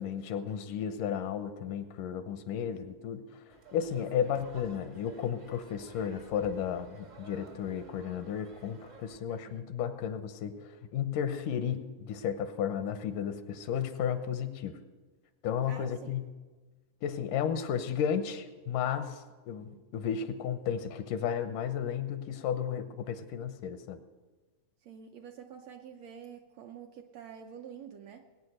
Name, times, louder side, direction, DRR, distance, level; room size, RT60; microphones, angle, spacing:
voice 1, 0.0-3.3 3.7-14.8 15.4-16.3 17.0-24.0, left 8 dB, 85° left, 10 dB, 2.5 m, -33 dB
sound 1, 3.5-9.2, right 3 dB, 45° right, 0.8 m, -55 dB
voice 2, 15.7-16.1 19.7-19.9 24.8-28.3, right 8 dB, 75° right, 4 dB, 1.6 m, -48 dB
19.5 x 9.3 x 6.5 m, 1.3 s
omnidirectional pair, 3.6 m